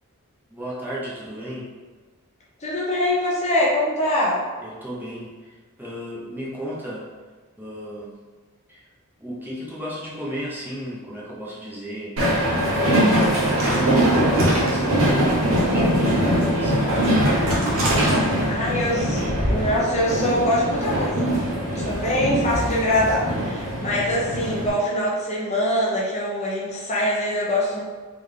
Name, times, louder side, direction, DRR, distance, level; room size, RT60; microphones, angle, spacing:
voice 1, 0.5-1.7 4.6-5.3 5.8-7.1 7.6-8.1 8.7-8.8 9.2-12.2 12.7-17.0 21.7-22.1, equal, 10° right, -7 dB, 1.0 m, -34 dB
voice 2, 2.6-4.4 18.5-21.1 21.7-27.8, left 1 dB, 30° left, -5 dB, 0.8 m, -23 dB
Train, 12.2-24.7, equal, 70° right, 1.2 m, -22 dB
3.5 x 3.5 x 3.7 m, 1.4 s
head